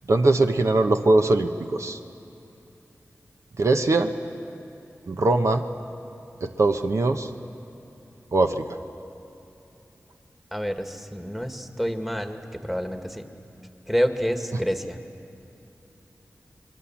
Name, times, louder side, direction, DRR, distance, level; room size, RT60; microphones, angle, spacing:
voice 1, 0.1-2.0 3.6-4.1 5.1-5.6 6.4-7.3 8.3-8.8, right 2 dB, 65° right, 6 dB, 1.0 m, -21 dB
voice 2, 10.5-13.2 13.9-15.0, equal, 5° right, 6 dB, 1.7 m, -28 dB
27.0 x 22.0 x 7.3 m, 2.8 s
cardioid pair, 45°, 5 cm